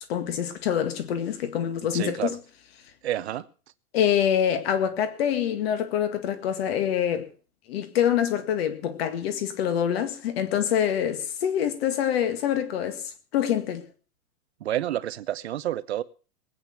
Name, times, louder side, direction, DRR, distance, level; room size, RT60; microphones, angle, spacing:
voice 1, 0.1-2.3 3.9-7.3 7.7-13.8, left 9 dB, 40° left, 2.0 m, -25 dB
voice 2, 1.9-2.4 3.0-3.5 14.6-16.0, right 12 dB, 45° right, 0.7 m, -29 dB
19.5 x 9.0 x 5.8 m
hypercardioid pair, 170°, 48 cm